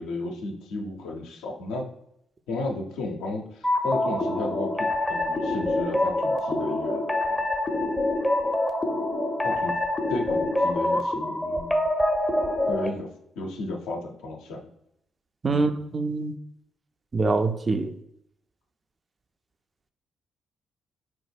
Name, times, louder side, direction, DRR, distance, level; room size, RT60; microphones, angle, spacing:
voice 1, 0.0-1.8 2.5-7.5 9.4-9.8 10.1-11.8 12.7-13.1 13.4-14.7 15.5-15.8, left 2 dB, 70° left, 0.4 m, -33 dB
sound 1, 3.6-12.9, left 1 dB, 20° left, 0.5 m, -26 dB
voice 2, 15.4-16.3 17.1-17.9, right 3 dB, 35° right, 0.3 m, -24 dB
3.1 x 2.1 x 3.3 m
hypercardioid pair, 40°, 0 cm